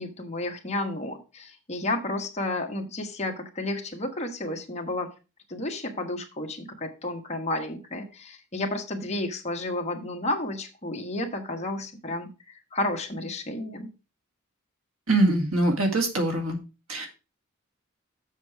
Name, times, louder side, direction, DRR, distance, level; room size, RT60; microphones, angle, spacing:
voice 1, 0.0-5.1 5.5-12.3 12.7-13.9, left 2 dB, 30° left, 2 dB, 1.4 m, -31 dB
voice 2, 15.1-16.6 16.9-17.1, right 2 dB, 80° right, 3 dB, 2.1 m, -23 dB
7.3 x 6.1 x 4.6 m, 0.30 s
head